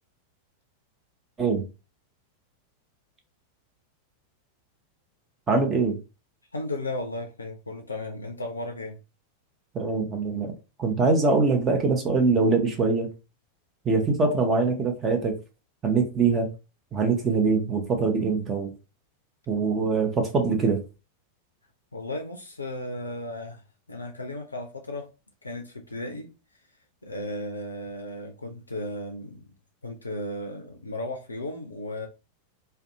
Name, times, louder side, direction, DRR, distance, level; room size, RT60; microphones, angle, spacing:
voice 1, 5.5-6.0 9.7-10.5 10.8-13.1 13.8-15.3 15.8-16.5 16.9-18.7 19.5-20.8, right 4 dB, 20° right, 0.6 m, -23 dB
voice 2, 6.5-9.0 21.9-23.6 23.9-25.1 25.4-26.3 27.0-29.5 29.8-32.1, left 1 dB, 80° left, 0.4 m, -35 dB
2.5 x 2.1 x 2.6 m
figure-of-eight pair, 90°, 0 cm